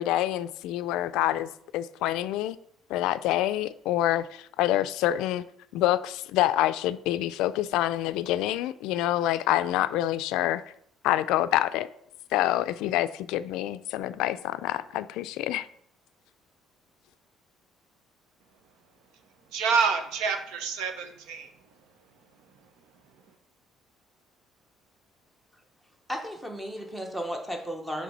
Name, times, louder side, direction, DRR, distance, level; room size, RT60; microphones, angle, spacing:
voice 1, 0.0-2.6 2.9-5.4 5.7-10.6 11.0-11.9 12.3-15.7, left 13 dB, 85° left, 0.3 m, -27 dB
voice 2, 19.5-23.4, right 5 dB, 85° right, 0.9 m, -30 dB
voice 3, 26.1-28.0, equal, 5° right, 0.8 m, -34 dB
7.7 x 3.5 x 5.3 m
cardioid pair, 180°, 0 cm